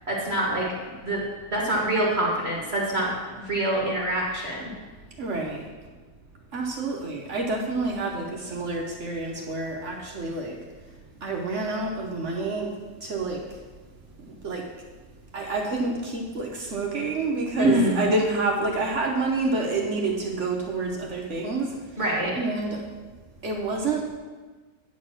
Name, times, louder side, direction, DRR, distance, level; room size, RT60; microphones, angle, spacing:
voice 1, 0.1-0.7 1.0-1.2 1.5-4.7 17.6-18.1 22.0-22.3, right 1 dB, 35° right, -4 dB, 1.3 m, -25 dB
voice 2, 5.2-5.6 6.5-10.6 11.2-12.7 13.0-13.4 14.4-14.7 15.3-21.8 22.4-22.9 23.4-24.2, right 3 dB, 50° right, 0 dB, 0.9 m, -28 dB
9.8 x 4.2 x 6.5 m, 1.3 s
omnidirectional pair, 2.2 m